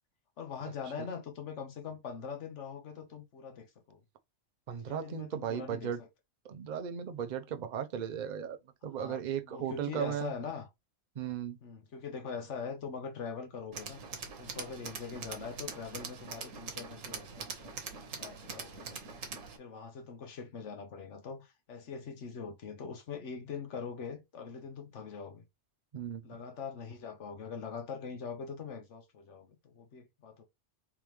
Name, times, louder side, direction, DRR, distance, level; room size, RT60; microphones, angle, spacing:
voice 1, 0.4-4.0 4.9-6.1 9.0-10.7 11.6-14.0 14.4-17.8 18.2-19.0 19.6-25.4 26.2-30.4, left 6 dB, 70° left, 1.3 m, -42 dB
voice 2, 4.7-6.0 6.4-10.3 11.2-11.6 25.9-26.4, right 8 dB, 50° right, 0.6 m, -36 dB
Tools, 13.7-19.6, right 5 dB, 85° right, 1.3 m, -43 dB
3.6 x 3.4 x 3.0 m
omnidirectional pair, 1.3 m